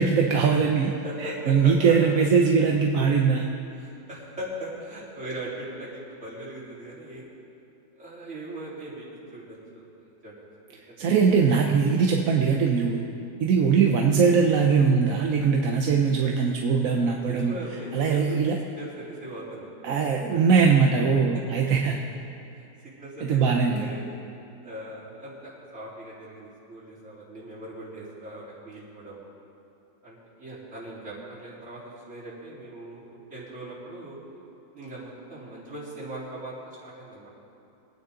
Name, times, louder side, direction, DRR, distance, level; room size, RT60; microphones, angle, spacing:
voice 1, 0.0-0.9 1.2-3.5 11.0-13.0 13.4-17.5 17.9-18.6 19.8-22.0 23.2-23.9, right 5 dB, 60° right, 1 dB, 1.1 m, -21 dB
voice 2, 1.0-1.9 3.8-7.2 8.0-10.3 10.7-11.2 12.7-12.9 16.9-19.7 20.3-20.7 21.3-21.4 22.6-24.2 24.6-29.2 30.0-34.2 34.7-37.3, right 1 dB, 40° right, -9 dB, 4.2 m, -40 dB
24.0 x 9.4 x 3.8 m, 2.8 s
omnidirectional pair, 1.8 m